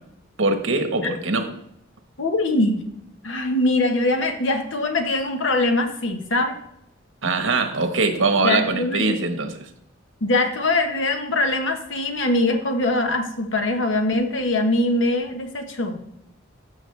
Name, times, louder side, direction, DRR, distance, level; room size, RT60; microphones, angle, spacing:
voice 1, 0.4-1.5 7.2-9.6, right 3 dB, 75° right, 6 dB, 1.3 m, -22 dB
voice 2, 2.2-2.8 3.2-6.6 8.4-9.2 10.2-16.0, left 2 dB, 70° left, 5 dB, 1.3 m, -22 dB
13.0 x 6.4 x 3.3 m, 0.77 s
head